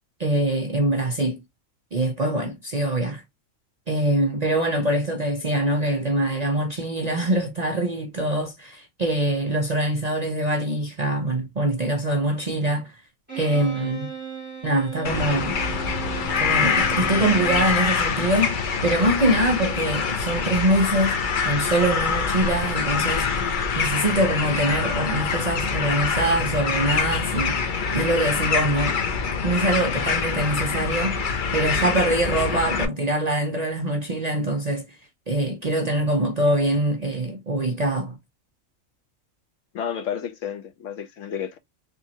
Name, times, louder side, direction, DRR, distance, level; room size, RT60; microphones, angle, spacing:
voice 1, 0.2-1.4 1.9-3.2 3.9-12.9 13.4-14.1 14.6-15.6 16.4-18.6 18.8-21.2 21.4-23.3 23.8-27.6 27.9-28.9 29.4-31.2 31.5-34.8 35.3-38.2, right 1 dB, 50° right, 0.5 m, -24 dB
Bowed string instrument, 13.3-17.8, right 7 dB, 10° right, 1.5 m, -36 dB
sound 1, 15.0-32.8, left 5 dB, 50° left, 0.7 m, -25 dB
voice 2, 39.7-41.6, left 8 dB, 70° left, 1.1 m, -31 dB
3.5 x 2.9 x 2.8 m
omnidirectional pair, 1.4 m